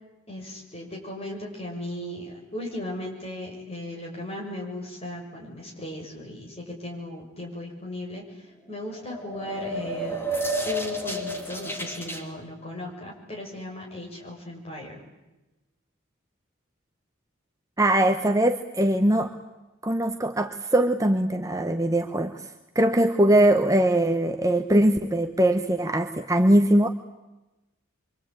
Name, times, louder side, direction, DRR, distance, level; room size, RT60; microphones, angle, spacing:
voice 1, 0.3-10.2 10.6-15.0, left 1 dB, 30° left, -1 dB, 6.9 m, -37 dB
sound 1, 8.9-12.2, equal, 10° left, 2.7 m, -31 dB
voice 2, 17.8-19.3 19.8-22.5 22.7-26.9, right 1 dB, 15° right, 6 dB, 1.0 m, -21 dB
26.0 x 24.5 x 8.9 m, 1.0 s
head